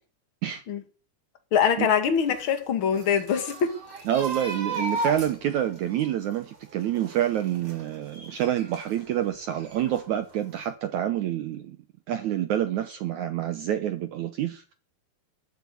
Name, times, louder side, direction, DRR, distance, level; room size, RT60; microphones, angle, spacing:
voice 1, 1.5-3.8, left 7 dB, 40° left, 2.0 m, -23 dB
sound 1, 2.2-9.0 9.5-10.3 10.6-10.7, right 2 dB, 40° right, 4.2 m, -36 dB
voice 2, 4.1-11.8 12.1-14.7, right 11 dB, 80° right, 1.7 m, -27 dB
14.0 x 8.0 x 9.6 m
omnidirectional pair, 4.6 m